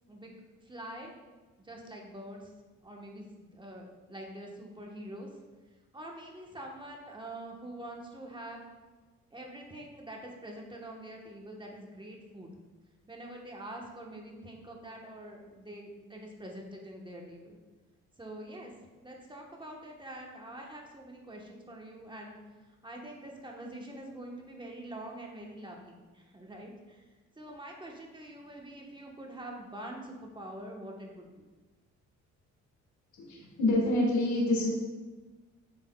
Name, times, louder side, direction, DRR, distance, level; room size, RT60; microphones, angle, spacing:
voice 1, 0.6-1.1 1.6-2.5 2.8-5.3 5.9-8.6 9.3-12.5 13.1-17.6 18.2-18.7 19.0-22.4 22.8-27.1 27.4-31.5, right 1 dB, 15° right, 0 dB, 1.2 m, -45 dB
voice 2, 33.2-34.7, left 2 dB, 65° left, -1 dB, 1.6 m, -27 dB
7.9 x 6.3 x 2.3 m, 1.3 s
cardioid pair, 90°, 30 cm